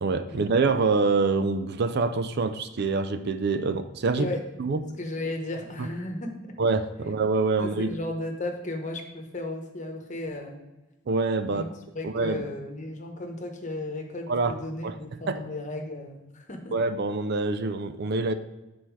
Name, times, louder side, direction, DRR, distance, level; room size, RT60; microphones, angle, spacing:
voice 1, 0.0-4.3 4.6-4.8 5.8-5.9 6.6-8.0 11.1-11.6 12.0-12.4 14.3-14.5 14.8-14.9 15.3-15.4 16.7-18.3, right 3 dB, 55° right, 10 dB, 0.4 m, -25 dB
voice 2, 4.8-6.5 7.0-7.1 7.6-10.6 11.5-11.7 11.9-16.7, left 2 dB, 35° left, 3 dB, 1.0 m, -35 dB
8.2 x 4.3 x 4.7 m, 1.0 s
head